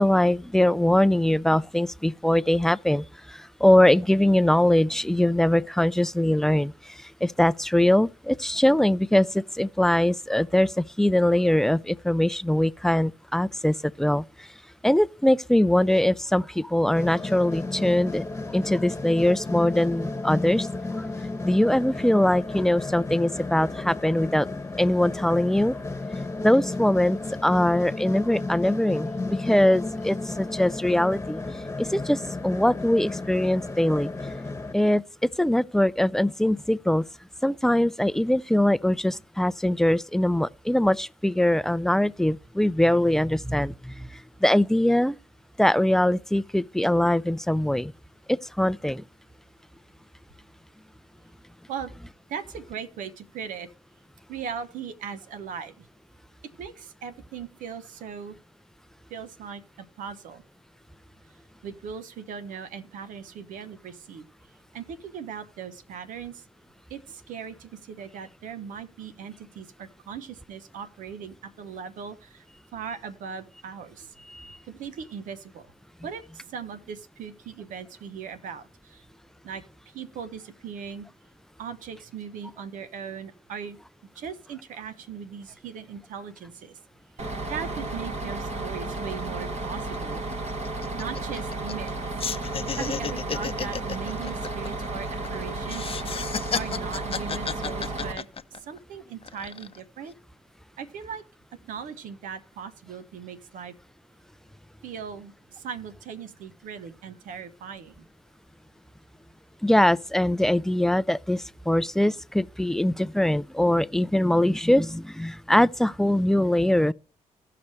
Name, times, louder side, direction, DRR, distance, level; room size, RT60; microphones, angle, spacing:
voice 1, 0.0-14.5 14.8-18.2 18.5-20.7 21.0-21.1 21.4-24.5 24.8-25.8 26.4-31.4 31.8-34.1 34.7-37.1 37.4-45.2 45.6-47.9 48.3-49.0 74.3-74.6 109.6-116.9, left 1 dB, 5° left, 0.4 m, -22 dB
sound 1, 16.9-34.7, left 3 dB, 20° left, 1.1 m, -33 dB
voice 2, 52.3-53.7 54.3-55.9 56.6-58.3 59.1-60.4 61.6-64.3 64.7-66.4 66.9-72.4 72.7-74.1 74.7-75.7 76.0-79.0 79.4-79.6 79.9-81.1 81.6-83.8 84.2-86.8 87.5-90.5 90.9-91.9 92.8-96.0 96.5-98.3 98.6-100.1 100.8-101.2 101.6-103.7 104.8-108.1, right 7 dB, 85° right, 0.9 m, -39 dB
Bus, 87.2-98.1, right 2 dB, 55° right, 2.2 m, -33 dB
sound 2, 89.4-89.5 89.8-90.0 90.3-91.9 92.2-95.3 95.7-98.8 99.2-99.8, left 6 dB, 45° left, 0.7 m, -32 dB
17.0 x 5.9 x 3.2 m
supercardioid pair, 55°, 13 cm